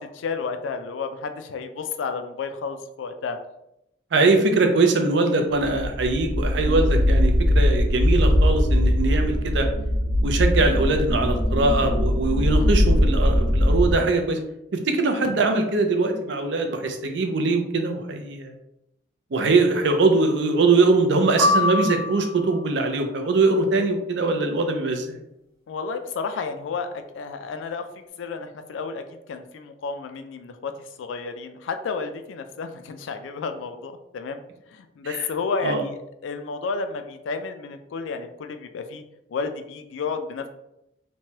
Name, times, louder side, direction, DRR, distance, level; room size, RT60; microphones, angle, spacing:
voice 1, 0.0-3.4 25.7-27.9 28.2-34.4 34.7-39.0 39.3-40.5, left 4 dB, 90° left, 8 dB, 0.3 m, -31 dB
voice 2, 4.1-9.7 10.2-14.4 14.7-18.5 19.3-25.2 35.1-35.2 35.6-35.8, right 3 dB, 70° right, 4 dB, 0.4 m, -22 dB
sound 1, 5.6-13.9, left 1 dB, 45° right, 0.9 m, -20 dB
sound 2, 21.4-22.7, left 2 dB, 15° right, 0.7 m, -23 dB
3.0 x 2.2 x 2.8 m, 0.84 s
head